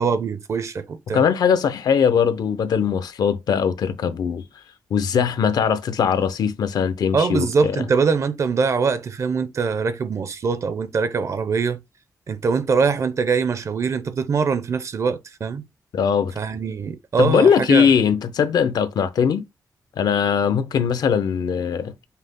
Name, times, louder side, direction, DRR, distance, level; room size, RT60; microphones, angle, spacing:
voice 1, 0.0-1.2 7.1-11.8 12.3-15.7 16.4-17.9, right 5 dB, 45° right, 0.5 m, -23 dB
voice 2, 1.1-4.4 4.9-7.8 15.9-16.3 17.2-19.4 20.0-21.9, left 7 dB, 80° left, 0.6 m, -20 dB
5.5 x 2.0 x 3.6 m
wide cardioid pair, 140°, 7 cm